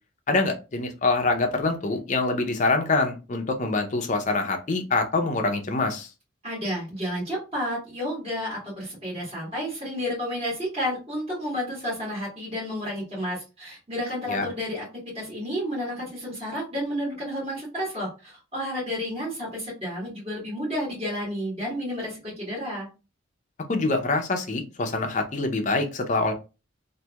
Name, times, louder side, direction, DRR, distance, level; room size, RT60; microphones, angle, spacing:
voice 1, 0.3-6.1 14.3-14.5 23.7-26.3, left 3 dB, 35° left, 4 dB, 0.5 m, -25 dB
voice 2, 6.4-14.9 15.1-22.9, equal, 30° right, -6 dB, 1.4 m, -31 dB
2.8 x 2.6 x 2.2 m, 0.30 s
head